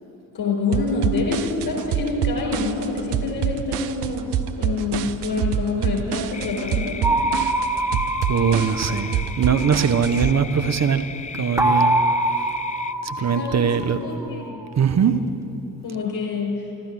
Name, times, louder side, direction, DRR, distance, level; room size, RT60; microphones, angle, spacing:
voice 1, 0.3-4.3 4.6-7.0 13.2-14.6 15.1-15.2 15.8-16.6, left 4 dB, 50° left, 0 dB, 4.5 m, -26 dB
sound 1, 0.7-10.3, right 9 dB, 80° right, 0.7 m, -26 dB
sound 2, 6.3-12.9, left 6 dB, 15° left, 0.4 m, -35 dB
sound 3, 7.0-9.9 11.6-14.4, right 1 dB, 5° right, 1.5 m, -24 dB
voice 2, 8.3-11.0 11.3-12.0 13.0-14.0 14.8-15.2, right 7 dB, 35° right, 10 dB, 1.0 m, -21 dB
14.5 x 12.0 x 7.7 m, 2.9 s
figure-of-eight pair, 40°, 47 cm